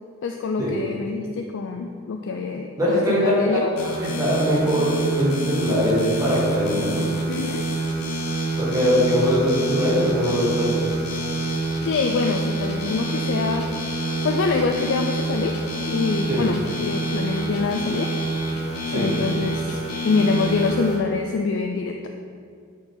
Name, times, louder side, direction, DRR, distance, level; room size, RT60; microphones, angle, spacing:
voice 1, 0.2-3.7 7.3-7.7 11.8-13.7 14.2-15.6 15.9-18.1 18.9-22.1, left 4 dB, 55° left, 3 dB, 0.3 m, -25 dB
voice 2, 2.8-3.6 4.0-7.0 8.6-10.7 16.3-16.4 18.9-19.1, equal, 15° right, -8 dB, 1.7 m, -21 dB
sound 1, 3.8-21.0, right 2 dB, 90° left, 0.9 m, -27 dB
8.8 x 4.4 x 3.7 m, 2.2 s
head